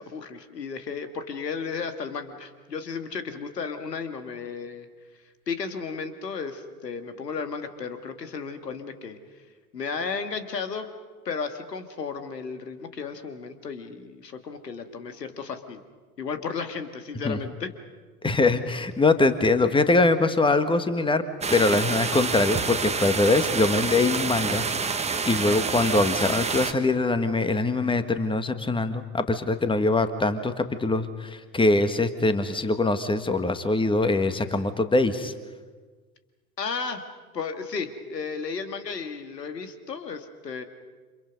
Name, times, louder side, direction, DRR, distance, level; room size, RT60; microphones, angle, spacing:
voice 1, 0.0-4.9 5.5-9.2 9.7-10.9 11.3-15.8 16.2-17.7 36.6-37.0 37.3-40.6, left 5 dB, 80° left, 7 dB, 2.2 m, -34 dB
voice 2, 18.2-21.2 21.5-24.6 25.3-35.3, left 2 dB, 10° left, 10 dB, 1.7 m, -23 dB
sound 1, 21.4-26.7, right 5 dB, 15° right, 1.4 m, -28 dB
29.0 x 27.5 x 5.4 m, 1.4 s
figure-of-eight pair, 80°, 49 cm